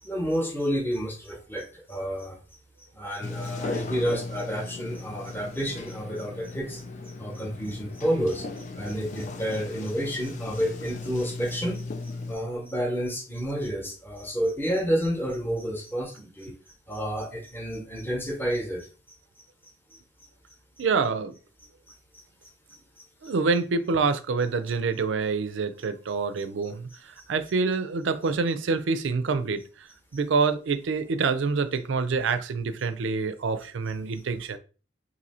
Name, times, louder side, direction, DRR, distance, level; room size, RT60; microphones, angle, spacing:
voice 1, 0.0-2.4 2.9-6.8 7.2-11.8 12.3-16.6 16.9-18.9 21.9-22.0 22.7-22.8 23.2-23.3 30.1-30.2, equal, 10° left, 0 dB, 0.9 m, -30 dB
Sliding door, 3.2-12.4, left 3 dB, 40° left, 0.4 m, -37 dB
voice 2, 20.8-21.3 23.2-34.6, right 4 dB, 75° right, 10 dB, 0.4 m, -27 dB
2.7 x 2.6 x 4.2 m, 0.36 s
head